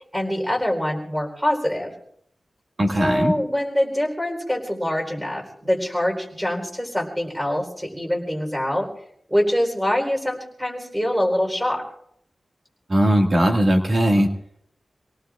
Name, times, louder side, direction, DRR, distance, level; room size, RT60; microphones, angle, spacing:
voice 1, 0.1-1.9 3.0-8.9 9.3-11.8, equal, 5° right, 1 dB, 4.0 m, -24 dB
voice 2, 2.8-3.3 12.9-14.3, equal, 45° right, 2 dB, 2.0 m, -18 dB
26.5 x 18.0 x 2.5 m, 0.70 s
wide cardioid pair, 95°, 0 cm